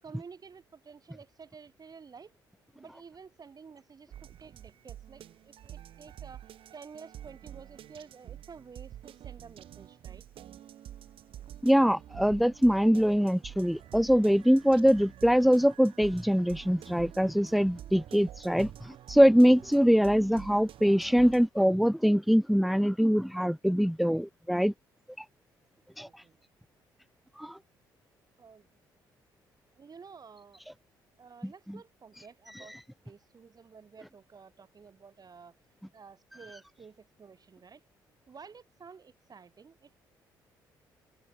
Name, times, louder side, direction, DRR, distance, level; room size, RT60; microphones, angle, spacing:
voice 1, 0.0-2.4 2.8-6.4 6.7-10.2 26.0-26.4 28.4-28.8 29.8-30.6 31.2-32.8 33.0-35.6 35.9-37.8 38.3-39.9, right 5 dB, 35° right, 7.1 m, -51 dB
sound 1, 4.1-21.5, right 11 dB, 55° right, 5.1 m, -48 dB
voice 2, 11.6-24.7 25.2-25.3 26.0-26.2 27.4-27.6 32.5-32.8, equal, ahead, 1.3 m, -23 dB
figure-of-eight pair, 45°, 11 cm